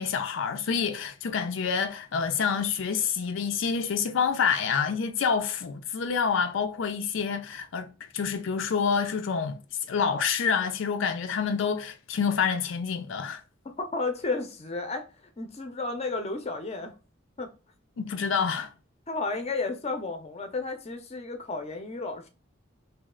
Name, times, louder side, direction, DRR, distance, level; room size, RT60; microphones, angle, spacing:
voice 1, 0.0-9.6 9.9-13.4 18.0-18.7, left 6 dB, 75° left, 0.4 m, -27 dB
voice 2, 13.6-15.1 15.4-16.9 17.4-17.5 19.1-22.3, left 3 dB, 35° left, 0.6 m, -32 dB
3.1 x 2.8 x 3.6 m
head